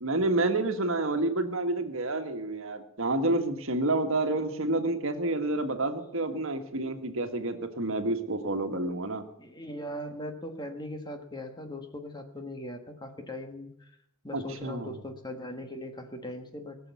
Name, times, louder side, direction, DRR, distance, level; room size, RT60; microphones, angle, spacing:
voice 1, 0.0-9.2 14.3-14.9, right 2 dB, 65° right, 6 dB, 1.7 m, -29 dB
voice 2, 9.4-13.9 14.2-16.8, left 1 dB, 20° left, 5 dB, 1.5 m, -39 dB
20.5 x 7.0 x 8.3 m, 0.74 s
head